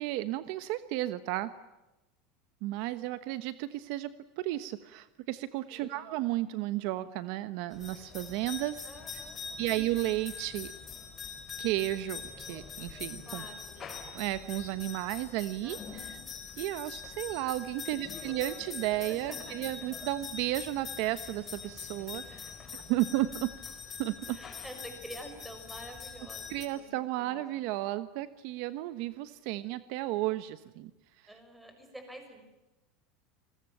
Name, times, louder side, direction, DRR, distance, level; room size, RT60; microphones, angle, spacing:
voice 1, 0.0-1.5 2.6-8.9 9.6-10.7 11.6-13.4 14.1-16.1 16.6-22.4 22.7-23.5 24.0-24.4 26.5-30.9, right 16 dB, 60° right, 13 dB, 1.1 m, -33 dB
voice 2, 5.7-6.1 8.8-9.8 13.3-13.7 15.6-16.2 17.9-18.7 19.0-19.9 22.3-22.4 24.3-27.7 31.3-32.4, equal, 5° right, 5 dB, 6.1 m, -48 dB
sound 1, 7.7-26.7, left 6 dB, 20° left, 4.5 m, -44 dB
29.5 x 21.0 x 9.1 m, 0.98 s
supercardioid pair, 150°, 0 cm